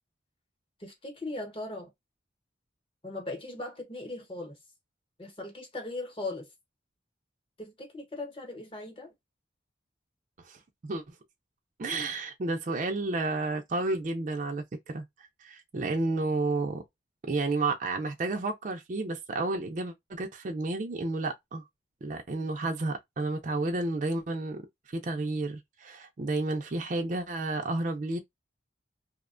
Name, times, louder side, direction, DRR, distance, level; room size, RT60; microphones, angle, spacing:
voice 1, 0.8-1.9 3.0-4.6 5.2-6.5 7.6-9.1, left 2 dB, 30° left, 0.9 m, -38 dB
voice 2, 10.4-11.0 11.8-16.8 17.3-21.6 22.0-24.6 24.9-28.2, right 2 dB, 40° right, 0.4 m, -31 dB
2.7 x 2.1 x 2.4 m
head